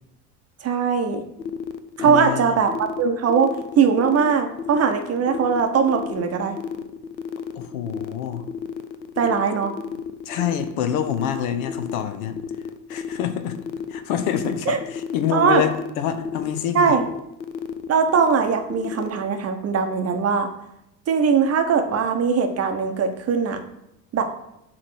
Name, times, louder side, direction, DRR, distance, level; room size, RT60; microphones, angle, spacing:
voice 1, 0.6-1.2 2.0-6.6 9.2-9.7 14.7-14.8 15.3-15.6 16.7-17.0 17.9-20.5 21.1-23.6 24.1-24.2, right 6 dB, 30° right, 6 dB, 0.9 m, -20 dB
sound 1, 1.4-19.1, left 7 dB, 85° left, 0.6 m, -32 dB
voice 2, 2.0-2.6 7.5-8.4 10.2-12.4 12.9-13.6 13.9-17.0, left 9 dB, 55° left, 8 dB, 0.8 m, -26 dB
7.6 x 3.1 x 6.2 m, 0.83 s
figure-of-eight pair, 65°, 50 cm